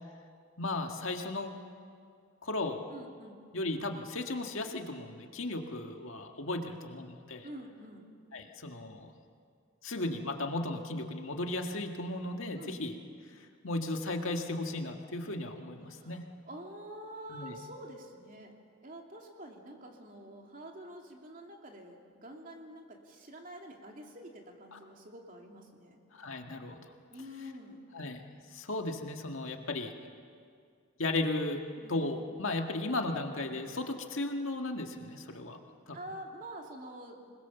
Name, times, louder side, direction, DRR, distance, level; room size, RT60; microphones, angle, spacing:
voice 1, 0.6-1.5 2.4-2.9 3.5-7.5 8.3-9.1 9.8-12.9 13.6-16.2 17.3-17.6 24.7-24.8 26.1-26.8 27.9-28.2 28.5-29.9 31.0-31.6 31.9-35.6 35.9-36.0, left 2 dB, 75° left, 4 dB, 1.8 m, -35 dB
voice 2, 2.9-3.4 7.4-8.1 12.6-12.8 15.9-16.2 16.4-18.5 18.8-26.0 27.1-27.8 31.8-32.0 35.9-37.4, right 1 dB, 40° right, 1 dB, 2.9 m, -47 dB
26.5 x 21.0 x 7.1 m, 2.2 s
head